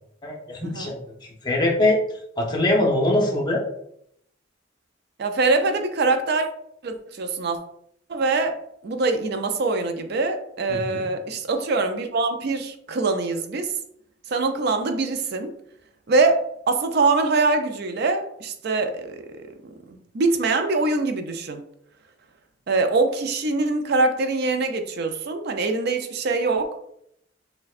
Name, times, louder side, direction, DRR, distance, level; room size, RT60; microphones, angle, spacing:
voice 1, 0.2-1.0 1.4-2.0 2.4-3.6 10.7-11.0, left 1 dB, 25° left, 0 dB, 0.7 m, -22 dB
voice 2, 5.2-6.5 6.8-7.6 8.1-8.6 8.8-13.7 14.3-15.5 16.1-19.2 19.9-21.6 22.7-26.8, right 3 dB, 60° right, 7 dB, 0.4 m, -23 dB
6.5 x 2.2 x 2.4 m, 0.72 s
head